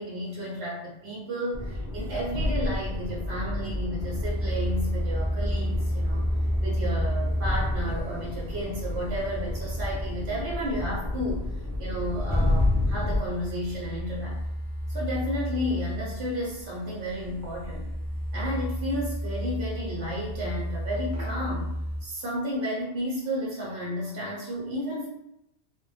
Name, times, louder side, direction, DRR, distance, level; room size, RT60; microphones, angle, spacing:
voice 1, 0.0-6.3 6.6-11.5 11.8-14.4 14.9-17.9 18.3-21.7 22.0-25.1, equal, 70° right, -5 dB, 0.9 m, -32 dB
sound 1, 1.5-13.2, left 1 dB, 10° left, 0.9 m, -30 dB
sound 2, 4.0-22.0, equal, 25° right, 0.5 m, -32 dB
2.1 x 2.0 x 3.1 m, 0.82 s
omnidirectional pair, 1.2 m